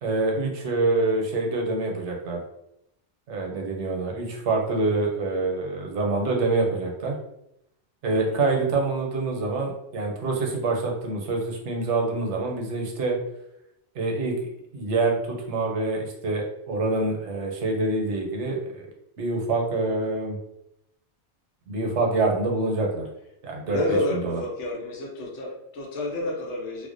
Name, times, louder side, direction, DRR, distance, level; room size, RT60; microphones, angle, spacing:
voice 1, 0.0-2.4 3.3-7.2 8.0-13.2 13.9-14.3 14.7-18.9 19.2-20.4 21.7-23.1 23.4-24.4, right 3 dB, 80° right, 0 dB, 0.9 m, -26 dB
voice 2, 8.1-8.4 23.6-26.9, left 2 dB, 85° left, -1 dB, 1.0 m, -29 dB
2.4 x 2.1 x 2.5 m, 0.80 s
omnidirectional pair, 1.2 m